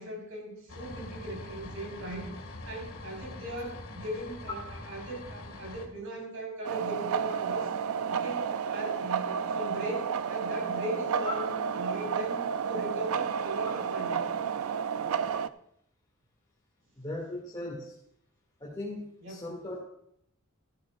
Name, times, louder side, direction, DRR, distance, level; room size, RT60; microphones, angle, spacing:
voice 1, 0.0-2.3 2.7-7.7 8.1-14.5 15.0-15.5 19.2-19.4, equal, 65° right, 0 dB, 4.3 m, -39 dB
sound 1, 0.7-5.9, left 2 dB, 70° left, 2.0 m, -44 dB
sound 2, 6.6-15.5, right 7 dB, 85° right, 0.4 m, -31 dB
voice 2, 17.0-17.9 18.6-19.8, left 1 dB, 20° left, -5 dB, 2.3 m, -38 dB
14.5 x 13.5 x 2.4 m, 0.69 s
head